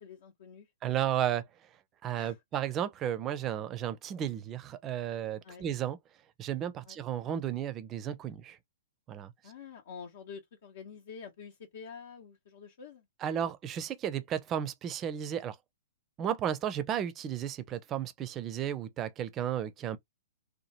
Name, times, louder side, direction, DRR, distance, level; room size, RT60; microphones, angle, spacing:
voice 1, 0.0-0.7 2.1-2.4 5.4-5.7 6.9-7.0 9.4-13.1, left 6 dB, 60° left, 0.8 m, -47 dB
voice 2, 0.8-1.4 2.0-6.0 6.4-8.6 9.1-9.3 13.2-15.6 16.2-20.0, right 10 dB, 25° right, 0.5 m, -33 dB
2.9 x 2.2 x 2.9 m
figure-of-eight pair, 115°, 0 cm